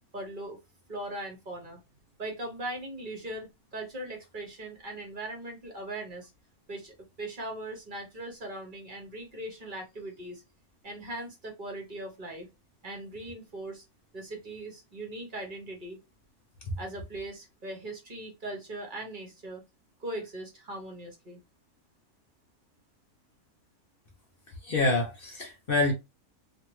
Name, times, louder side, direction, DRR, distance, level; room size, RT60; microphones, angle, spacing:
voice 1, 0.1-0.6 0.9-1.8 2.2-6.3 6.7-10.4 10.8-12.5 12.8-13.8 14.1-16.0 16.8-19.6 20.0-21.4, right 1 dB, 40° right, 1.1 m, -39 dB
voice 2, 24.6-25.9, left 2 dB, 45° left, 0.8 m, -26 dB
2.9 x 2.7 x 3.0 m
omnidirectional pair, 1.6 m